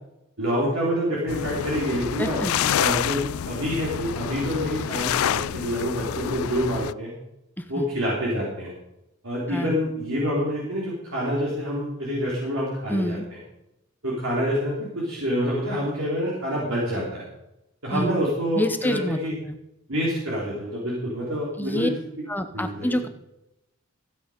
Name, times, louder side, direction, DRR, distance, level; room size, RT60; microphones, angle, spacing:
voice 1, 0.4-2.4 2.8-7.1 7.7-8.7 9.2-13.2 14.0-17.2 17.8-19.3 19.9-21.9 22.5-23.0, equal, 70° right, -5 dB, 3.8 m, -27 dB
sound 1, 1.3-6.9, left 10 dB, 85° left, 0.3 m, -28 dB
voice 2, 2.2-2.7 7.6-7.8 9.5-9.8 12.9-13.3 17.9-18.2 18.5-19.6 21.6-21.9 22.3-23.1, left 1 dB, 10° left, 7 dB, 0.8 m, -27 dB
15.5 x 9.1 x 5.1 m, 0.88 s
head